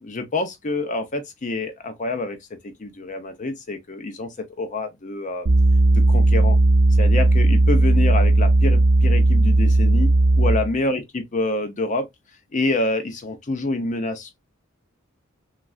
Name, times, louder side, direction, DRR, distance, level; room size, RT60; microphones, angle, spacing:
voice 1, 0.0-2.4 2.6-4.3 4.6-5.5 5.9-6.6 7.0-10.1 10.4-12.1 12.5-14.4, left 2 dB, 35° left, 0.5 m, -27 dB
sound 1, 5.5-10.7, right 2 dB, 60° right, 0.7 m, -16 dB
3.1 x 2.4 x 2.3 m
head